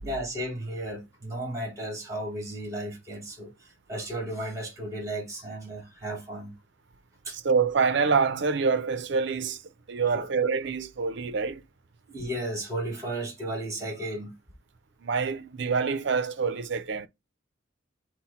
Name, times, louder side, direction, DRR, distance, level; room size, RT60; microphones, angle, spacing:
voice 1, 0.0-6.5 7.2-7.4 10.0-10.3 12.1-14.3, right 1 dB, 15° right, 1.7 m, -34 dB
voice 2, 7.3-9.6 9.9-11.6 15.0-17.1, right 5 dB, 60° right, 0.5 m, -26 dB
6.0 x 2.1 x 4.1 m
head